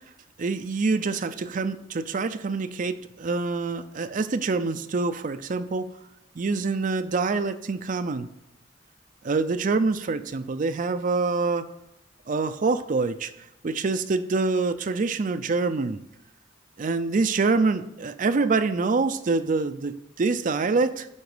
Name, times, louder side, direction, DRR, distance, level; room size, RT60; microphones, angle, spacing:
voice 1, 0.4-5.9 6.4-8.3 9.2-11.7 12.3-13.3 13.6-16.0 16.8-21.1, right 3 dB, 45° right, 10 dB, 0.5 m, -25 dB
9.6 x 3.9 x 4.9 m, 0.88 s
head